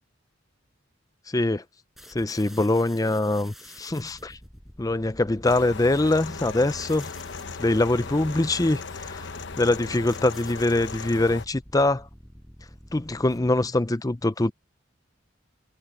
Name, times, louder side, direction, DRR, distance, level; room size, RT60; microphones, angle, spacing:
voice 1, 1.3-1.6 2.1-4.4 4.8-7.1 7.6-9.3 9.6-12.1 12.9-14.5, left 2 dB, 20° left, 0.6 m, -23 dB
sound 1, 2.0-13.8, equal, ahead, 7.6 m, -49 dB
sound 2, 5.4-11.5, left 4 dB, 60° left, 1.0 m, -37 dB
head